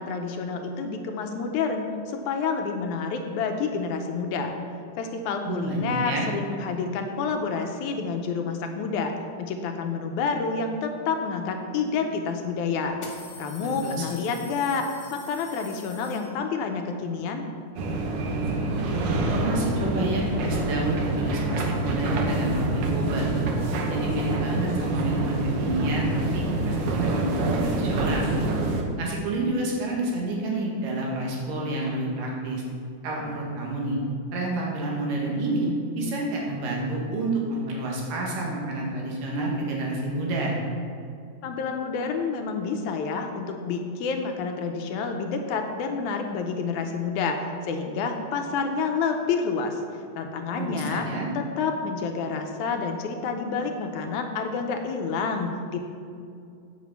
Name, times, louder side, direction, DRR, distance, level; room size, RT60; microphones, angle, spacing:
voice 1, 0.0-4.5 5.0-13.0 13.4-17.5 41.4-49.8 50.2-51.1 51.4-55.8, left 5 dB, 75° left, 4 dB, 2.0 m, -29 dB
voice 2, 5.5-6.3 13.6-14.1 19.3-23.5 23.9-28.5 29.0-32.6 33.0-34.0 34.3-35.7 36.0-40.6 50.6-51.3, right 2 dB, 90° right, -2 dB, 3.4 m, -29 dB
sound 1, 11.8-11.9 12.9-16.7, left 3 dB, 60° left, 1.0 m, -45 dB
sound 2, 17.8-28.8, right 2 dB, 65° right, 1.5 m, -26 dB
9.3 x 5.9 x 7.1 m, 2.4 s
omnidirectional pair, 3.7 m